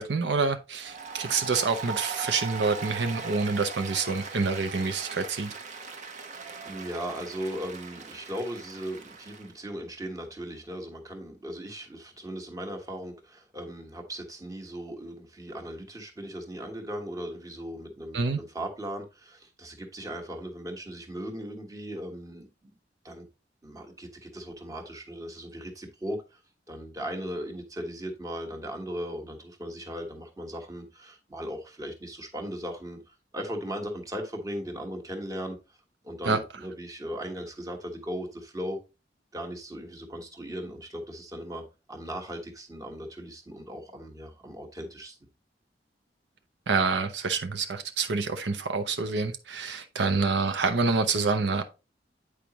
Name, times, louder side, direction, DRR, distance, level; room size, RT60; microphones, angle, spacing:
voice 1, 0.0-5.6 18.1-18.4 36.3-36.4 46.7-51.6, right 4 dB, 75° right, 0.7 m, -27 dB
Applause, 0.8-9.5, right 5 dB, 45° right, 1.0 m, -39 dB
voice 2, 6.6-22.7 23.0-23.3 23.6-26.4 26.7-35.8 36.0-38.8 39.3-45.2, equal, 20° right, 1.3 m, -38 dB
8.6 x 4.9 x 3.0 m
head